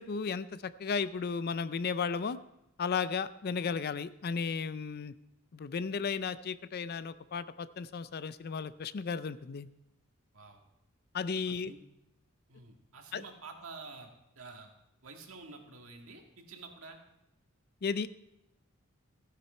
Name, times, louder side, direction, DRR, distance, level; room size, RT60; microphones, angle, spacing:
voice 1, 0.0-2.4 2.8-5.1 5.5-9.7 11.1-11.7 13.1-13.2 17.8-18.1, left 5 dB, 45° left, 15 dB, 0.4 m, -34 dB
voice 2, 12.5-14.7 15.0-17.0, right 3 dB, 75° right, 3 dB, 1.8 m, -49 dB
15.0 x 10.0 x 4.3 m, 0.86 s
head